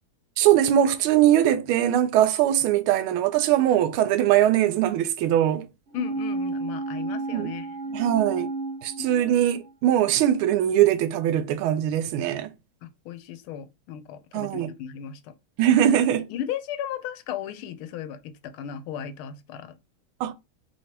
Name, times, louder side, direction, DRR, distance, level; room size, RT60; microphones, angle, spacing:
voice 1, 0.4-5.7 7.3-7.5 7.9-8.5 8.8-12.5 14.3-14.7 15.6-16.3 20.2-20.3, right 11 dB, 90° right, 1.4 m, -21 dB
voice 2, 5.9-8.0 9.0-9.4 12.8-15.3 16.3-19.8, left 9 dB, 90° left, 1.5 m, -36 dB
sound 1, 5.9-9.7 10.0-10.1, right 3 dB, 65° right, 0.7 m, -32 dB
3.5 x 3.1 x 2.8 m
omnidirectional pair, 2.3 m